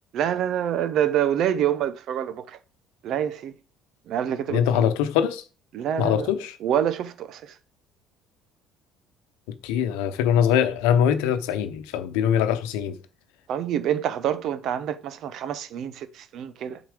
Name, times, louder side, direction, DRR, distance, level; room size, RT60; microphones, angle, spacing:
voice 1, 0.1-2.6 3.0-3.5 4.1-4.9 5.7-6.3 6.6-7.6 13.5-16.8, right 10 dB, 65° right, 0.8 m, -26 dB
voice 2, 4.5-5.4 6.0-6.6 9.6-13.0, left 9 dB, 85° left, 0.9 m, -22 dB
8.1 x 4.0 x 5.0 m
supercardioid pair, 85°, 0 cm